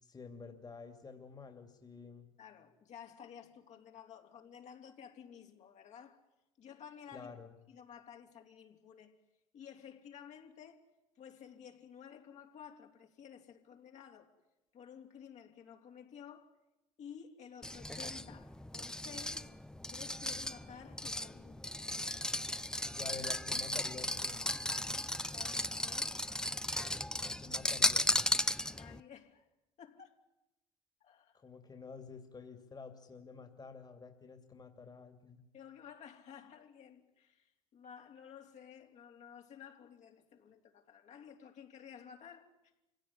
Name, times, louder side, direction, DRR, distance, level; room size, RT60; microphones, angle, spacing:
voice 1, 0.0-2.3 7.1-7.5 22.9-24.4 27.2-28.1 31.3-35.4, left 4 dB, 30° left, 2.8 m, -49 dB
voice 2, 2.4-6.2 6.6-7.4 7.7-9.1 9.5-10.8 11.1-14.3 14.7-16.5 17.0-19.5 19.9-21.9 25.1-26.2 28.6-29.4 29.8-30.2 31.0-31.4 35.5-42.5, left 8 dB, 55° left, 3.4 m, -53 dB
sound 1, 17.6-29.0, left 1 dB, 5° left, 0.8 m, -36 dB
25.5 x 17.0 x 9.9 m
hypercardioid pair, 65°, 14 cm